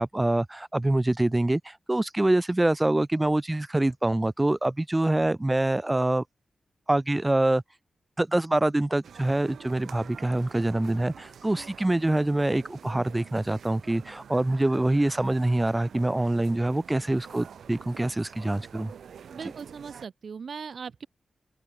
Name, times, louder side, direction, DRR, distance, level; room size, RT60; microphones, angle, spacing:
voice 1, 0.0-6.2 6.9-7.6 8.2-18.9 19.4-19.5, right 1 dB, 20° right, 1.8 m, -25 dB
sound 1, 9.0-20.1, right 7 dB, 90° right, 5.1 m, -47 dB
voice 2, 19.3-21.1, right 6 dB, 70° right, 0.7 m, -39 dB
open air
cardioid pair, 60°, 0 cm